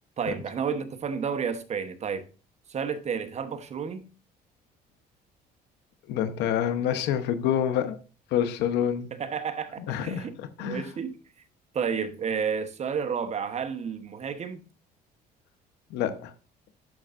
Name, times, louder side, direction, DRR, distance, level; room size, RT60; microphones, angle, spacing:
voice 1, 0.2-2.2 2.7-4.1 9.2-11.2 11.7-14.7, right 6 dB, 40° right, 1.0 m, -31 dB
voice 2, 6.1-8.0 8.3-9.1 9.9-10.9 15.9-16.3, left 9 dB, 85° left, 0.9 m, -27 dB
12.0 x 5.3 x 2.5 m
cardioid pair, 110°, 17 cm